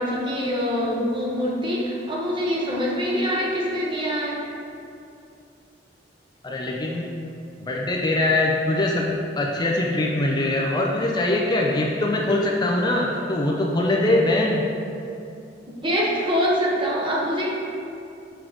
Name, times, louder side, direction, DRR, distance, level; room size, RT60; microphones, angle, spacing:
voice 1, 0.0-4.4 15.8-17.5, equal, 30° right, -4 dB, 1.2 m, -24 dB
voice 2, 6.4-7.1 7.6-14.7, left 2 dB, 25° left, -2 dB, 0.5 m, -22 dB
6.1 x 4.7 x 5.0 m, 2.6 s
head